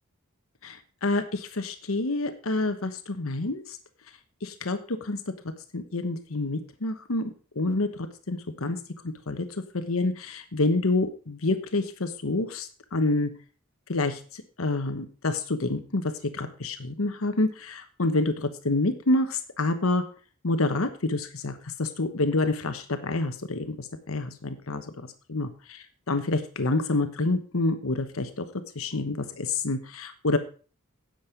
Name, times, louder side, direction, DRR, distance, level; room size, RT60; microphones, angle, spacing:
voice 1, 0.6-3.8 4.4-5.2 5.7-8.8 9.0-9.5 9.7-13.3 13.9-16.0 16.3-20.0 20.4-28.4 28.7-30.4, left 2 dB, 85° left, 8 dB, 1.2 m, -28 dB
10.5 x 7.6 x 5.1 m, 0.38 s
head